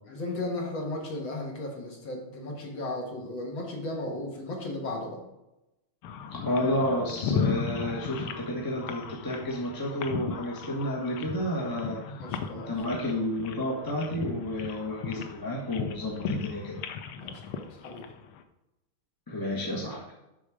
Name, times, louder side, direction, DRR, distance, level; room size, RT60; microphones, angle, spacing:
voice 1, 0.1-5.2 12.0-12.7 17.2-18.1, left 2 dB, 65° left, 0 dB, 2.4 m, -35 dB
sound 1, 6.0-18.4, left 6 dB, 85° left, 1.6 m, -36 dB
voice 2, 6.3-12.3 12.5-16.8 19.3-20.1, left 1 dB, 15° left, -3 dB, 1.0 m, -31 dB
11.5 x 4.1 x 4.9 m, 0.93 s
omnidirectional pair, 2.4 m